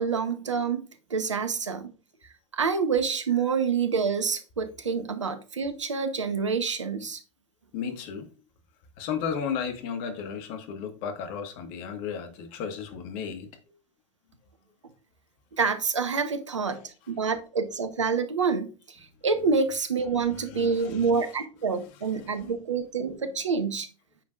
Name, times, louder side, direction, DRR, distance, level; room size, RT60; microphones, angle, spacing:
voice 1, 0.0-1.9 2.5-7.2 15.5-23.9, right 5 dB, 75° right, 1.1 m, -27 dB
voice 2, 7.7-8.3 9.0-13.5 20.1-21.3 22.2-22.4, left 7 dB, 45° left, 1.7 m, -34 dB
9.1 x 6.2 x 2.6 m
figure-of-eight pair, 85°, 16 cm